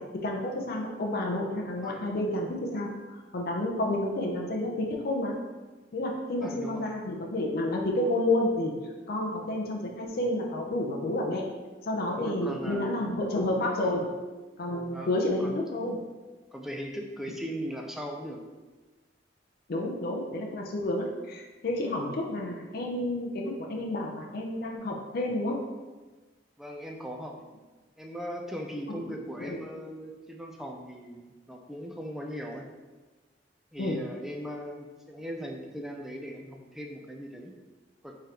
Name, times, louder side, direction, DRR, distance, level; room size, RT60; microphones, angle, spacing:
voice 1, 0.0-5.4 5.9-8.7 9.1-11.5 11.8-14.1 14.6-16.0 19.7-25.6 28.9-29.0 29.4-29.6 33.8-34.0, left 1 dB, 55° left, 0 dB, 0.5 m, -30 dB
voice 2, 1.8-2.1 6.4-6.9 12.1-13.0 13.8-13.9 14.9-15.1 15.4-15.7 16.5-18.4 26.6-27.3 28.0-32.7 33.7-37.5 38.0-38.2, equal, ahead, 1 dB, 0.3 m, -39 dB
3.7 x 3.2 x 2.8 m, 1.3 s
head